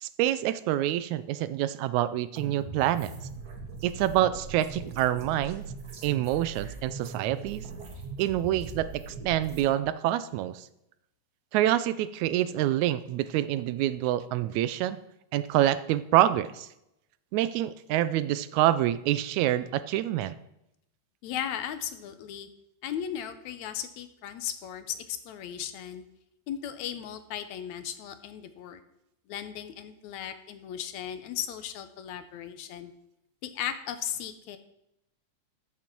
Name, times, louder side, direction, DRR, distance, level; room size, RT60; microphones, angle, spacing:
voice 1, 0.0-3.1 3.8-5.7 6.0-7.7 8.2-10.7 11.5-15.0 15.3-16.7 17.3-20.4, right 13 dB, 85° right, 14 dB, 1.9 m, -26 dB
sound 1, 2.3-9.7, right 4 dB, 40° right, 1.9 m, -41 dB
voice 2, 21.2-22.5 22.8-26.1 26.5-28.8 29.3-32.9 33.4-34.6, left 10 dB, 75° left, 10 dB, 2.1 m, -36 dB
13.5 x 7.3 x 4.5 m, 0.82 s
omnidirectional pair, 3.3 m